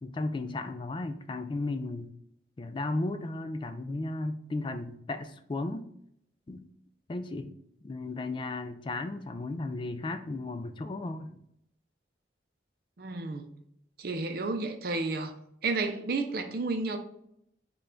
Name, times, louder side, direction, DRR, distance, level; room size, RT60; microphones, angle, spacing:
voice 1, 0.0-2.1 2.6-5.9 6.5-6.7 7.1-7.5 7.8-11.4, left 2 dB, 25° left, 9 dB, 0.3 m, -35 dB
voice 2, 13.0-13.5 14.0-15.3 15.6-17.0, right 3 dB, 55° right, 6 dB, 0.5 m, -31 dB
5.4 x 2.3 x 3.7 m, 0.74 s
head